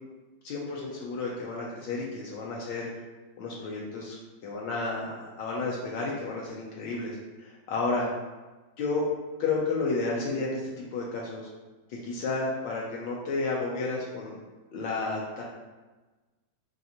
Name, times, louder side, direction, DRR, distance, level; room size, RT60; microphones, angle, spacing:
voice 1, 0.4-2.9 3.4-4.2 4.4-7.1 7.4-8.1 8.8-9.1 9.4-11.5 11.9-14.4 14.7-15.4, left 3 dB, 75° left, -3 dB, 1.2 m, -31 dB
5.2 x 2.5 x 2.8 m, 1.2 s
omnidirectional pair, 2.1 m